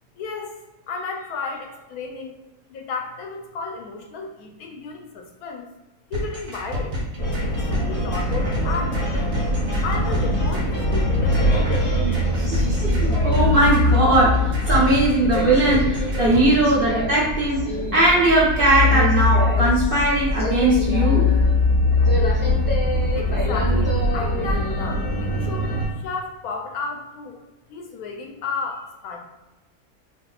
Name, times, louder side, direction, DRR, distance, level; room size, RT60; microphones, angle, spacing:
voice 1, 0.2-0.5 0.9-2.4 2.7-5.7 6.1-6.9 7.5-9.4 9.8-11.9 23.1-25.7 26.0-27.4 27.7-29.2, left 4 dB, 80° left, 2 dB, 1.1 m, -33 dB
sound 1, 6.1-16.5, equal, 65° right, 1.3 m, -30 dB
sound 2, 7.2-25.9, left 2 dB, 20° left, 0.7 m, -22 dB
voice 2, 12.4-17.6 17.9-21.3, right 1 dB, 45° right, -6 dB, 0.9 m, -19 dB
3.5 x 2.7 x 2.3 m, 1.0 s
omnidirectional pair, 1.6 m